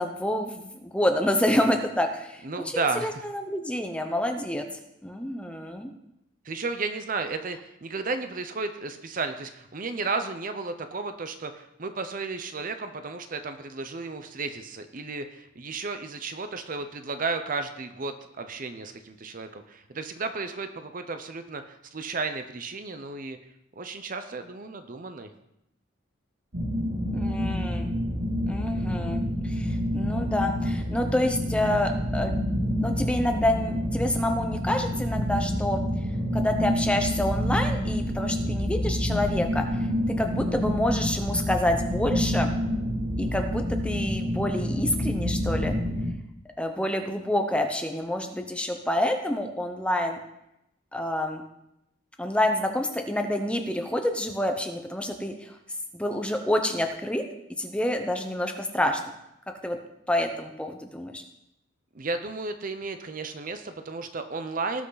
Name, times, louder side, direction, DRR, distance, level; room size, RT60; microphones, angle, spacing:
voice 1, 0.0-4.7 5.0-5.9 27.1-27.9 28.5-32.4 32.8-35.8 36.3-39.9 40.2-42.5 43.2-45.7 46.6-50.2 50.9-51.4 52.2-55.5 55.9-57.2 57.6-59.0 59.6-59.8 60.1-61.2, left 1 dB, 5° left, 5 dB, 0.9 m, -28 dB
voice 2, 2.4-3.2 6.4-23.4 23.8-25.3 61.9-64.9, right 3 dB, 40° right, 8 dB, 0.7 m, -33 dB
sound 1, 26.5-46.1, equal, 75° right, 2.5 m, -28 dB
18.0 x 6.1 x 4.0 m, 0.84 s
head